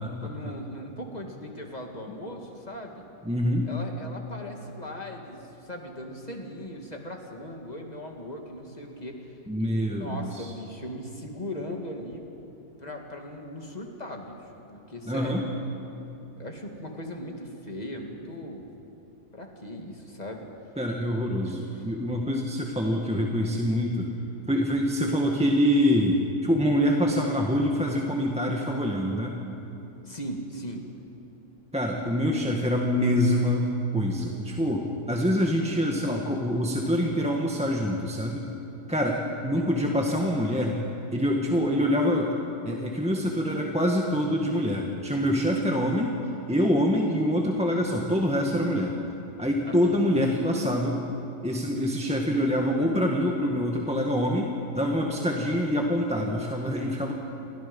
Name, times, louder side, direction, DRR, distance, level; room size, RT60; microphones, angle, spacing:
voice 1, 0.2-3.0 3.6-12.5 12.8-14.4 14.7-15.5 16.4-18.7 19.3-20.5 21.7-21.9 30.0-30.8 39.5-39.9 45.5-45.9 49.7-50.0 55.1-55.2, left 1 dB, 25° left, 1 dB, 2.5 m, -39 dB
voice 2, 3.2-3.7 9.5-10.5 15.1-15.4 20.8-24.1 24.5-29.4 31.7-33.7 33.9-38.5 38.9-40.8 41.1-42.4 42.6-46.1 46.5-48.9 49.4-51.0 51.4-57.1, equal, 5° right, -1 dB, 1.6 m, -25 dB
29.5 x 24.0 x 5.5 m, 3.0 s
omnidirectional pair, 1.6 m